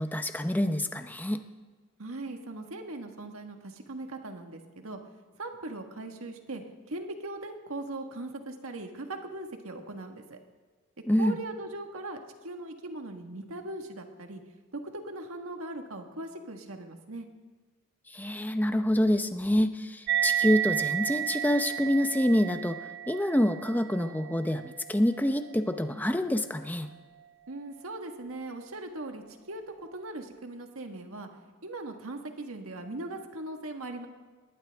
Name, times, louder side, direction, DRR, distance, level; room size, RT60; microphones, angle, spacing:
voice 1, 0.0-1.4 11.1-11.4 18.1-22.8 23.1-26.9, left 1 dB, 10° left, 8 dB, 0.7 m, -27 dB
voice 2, 2.0-5.0 5.4-6.6 6.9-10.4 11.2-14.4 14.7-17.3 27.5-31.3 31.6-34.1, right 2 dB, 80° right, 4 dB, 1.6 m, -39 dB
sound 1, 20.1-27.0, right 10 dB, 55° right, 0.4 m, -33 dB
20.0 x 17.5 x 3.5 m, 1.4 s
head